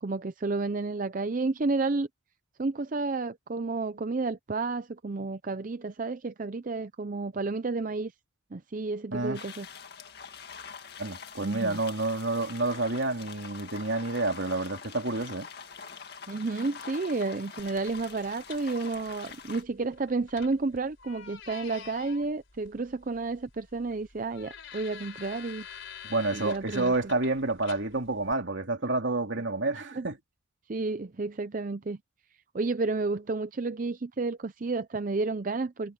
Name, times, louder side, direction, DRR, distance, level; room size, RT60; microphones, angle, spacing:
voice 1, 0.0-2.1 2.6-8.1 8.5-9.7 11.4-11.8 16.3-25.7 26.3-26.9 29.9-30.1 30.7-32.0 32.5-35.9, right 3 dB, 40° right, 0.5 m, -31 dB
sound 1, 9.3-19.6, left 6 dB, 50° left, 2.1 m, -45 dB
voice 2, 11.0-15.5 26.0-30.2, right 2 dB, 65° right, 2.7 m, -29 dB
sound 2, 17.6-28.3, left 7 dB, 65° left, 3.8 m, -48 dB
head